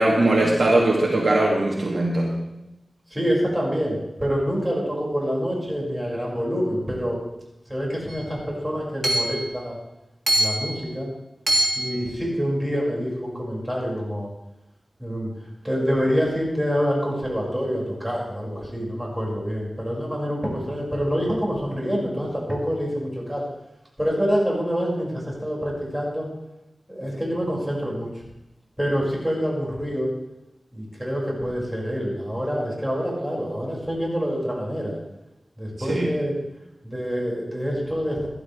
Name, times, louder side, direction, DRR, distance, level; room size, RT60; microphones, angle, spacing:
voice 1, 0.0-2.3 35.9-36.1, right 1 dB, 65° right, -2 dB, 2.3 m, -20 dB
voice 2, 3.1-7.2 7.7-9.8 10.4-11.1 11.7-14.3 15.0-15.3 15.6-23.4 24.0-26.3 26.9-28.2 28.8-30.1 30.7-35.0 35.6-36.4 36.8-38.3, equal, 10° right, -3 dB, 5.7 m, -26 dB
Hammer / Chink clink, 8.1-8.2 9.0-9.4 10.3-10.7 11.5-11.9, right 1 dB, 50° right, 2.4 m, -22 dB
16.0 x 12.0 x 3.4 m, 0.92 s
wide cardioid pair, 60°, 0 cm